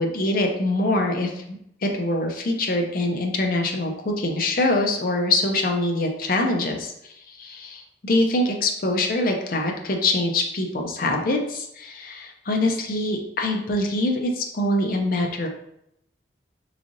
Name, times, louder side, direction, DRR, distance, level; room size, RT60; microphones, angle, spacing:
voice 1, 0.0-1.6 1.8-15.5, left 2 dB, 50° left, 2 dB, 0.5 m, -24 dB
3.6 x 3.2 x 2.5 m, 0.78 s
head